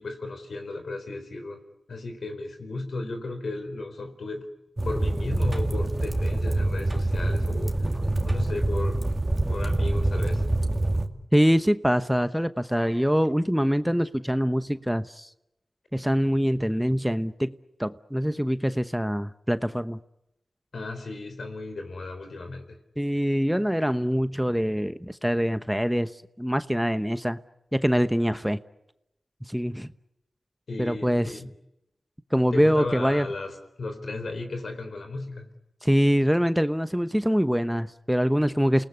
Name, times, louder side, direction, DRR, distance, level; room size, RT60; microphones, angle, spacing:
voice 1, 0.0-1.6 1.9-4.5 4.8-7.9 8.2-9.1 9.5-10.4 20.7-22.8 30.7-31.5 32.5-35.5, left 2 dB, 75° left, 7 dB, 4.1 m, -35 dB
sound 1, 4.8-11.1, right 2 dB, 25° right, 2.4 m, -25 dB
voice 2, 11.3-15.3 15.9-17.5 17.8-20.0 23.0-26.1 26.4-27.4 27.7-28.6 29.5-29.9 30.8-31.3 32.3-33.3 35.8-38.8, equal, 5° right, 12 dB, 1.0 m, -24 dB
28.5 x 19.5 x 9.7 m, 0.89 s
cardioid pair, 45°, 0 cm